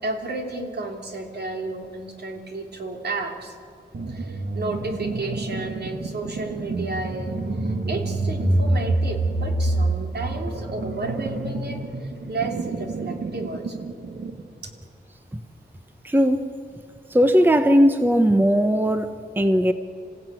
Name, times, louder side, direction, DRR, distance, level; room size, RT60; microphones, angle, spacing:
voice 1, 0.0-3.6 4.1-13.9, right 2 dB, 65° right, 3 dB, 3.1 m, -32 dB
sound 1, 3.9-14.4, right 2 dB, 80° right, 2.2 m, -27 dB
voice 2, 16.0-16.5 17.1-19.7, equal, 10° right, 9 dB, 1.0 m, -18 dB
27.5 x 16.0 x 9.1 m, 2.3 s
wide cardioid pair, 130°, 18 cm